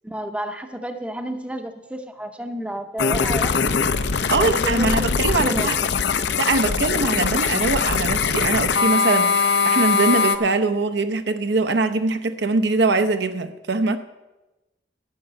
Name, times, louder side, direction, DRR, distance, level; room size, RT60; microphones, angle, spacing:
voice 1, 0.0-3.7 4.3-4.9 5.2-5.7, right 1 dB, 5° right, 0.7 m, -31 dB
sound 1, 3.0-10.4, left 5 dB, 65° left, 0.6 m, -21 dB
voice 2, 4.3-5.7 6.4-14.0, right 3 dB, 65° right, 0.7 m, -22 dB
12.0 x 5.7 x 8.6 m
head